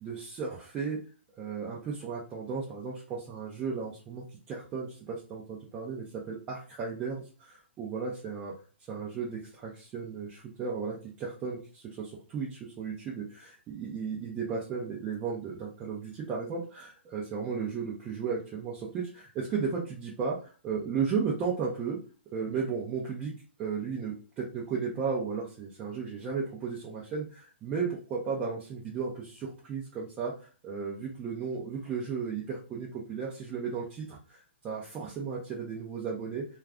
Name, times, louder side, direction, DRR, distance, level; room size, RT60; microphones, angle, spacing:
voice 1, 0.0-1.0 1.4-8.5 8.9-22.0 22.3-23.3 23.6-30.3 30.6-36.4, right 5 dB, 20° right, -4 dB, 0.6 m, -35 dB
2.4 x 2.3 x 3.4 m, 0.38 s
hypercardioid pair, 145°, 7 cm